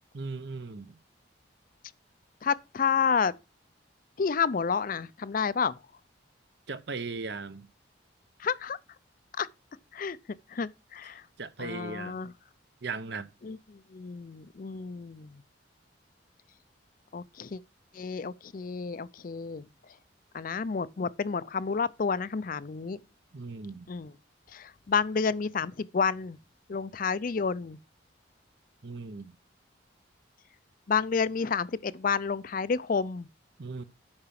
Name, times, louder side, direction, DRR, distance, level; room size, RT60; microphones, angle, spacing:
voice 1, 0.1-1.0 6.7-7.7 11.4-12.2 12.8-13.3 23.3-23.9 28.8-29.3 33.6-33.8, right 4 dB, 60° right, 0.8 m, -37 dB
voice 2, 2.4-3.3 4.2-5.8 8.4-8.8 9.4-9.5 9.9-10.2 10.5-11.2 11.6-12.3 13.4-13.6 13.9-15.4 17.1-17.6 17.9-19.6 20.3-23.0 23.9-24.1 24.5-26.4 26.7-27.8 30.9-33.3, left 5 dB, 45° left, 0.4 m, -30 dB
8.7 x 5.8 x 5.8 m
head